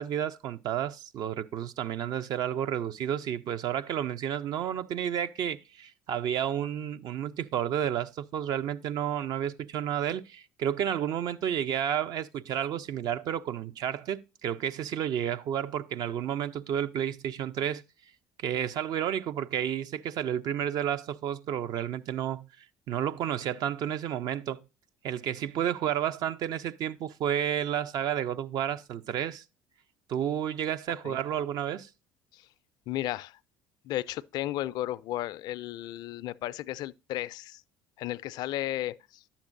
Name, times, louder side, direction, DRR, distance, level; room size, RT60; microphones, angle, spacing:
voice 1, 0.0-17.8 18.4-22.5 22.9-24.6 25.0-29.4 30.1-31.9, right 10 dB, 60° right, 0.5 m, -31 dB
voice 2, 32.9-33.4 33.8-37.6 38.0-39.2, left 14 dB, 65° left, 0.4 m, -34 dB
9.9 x 7.2 x 2.5 m
hypercardioid pair, 70°, 8 cm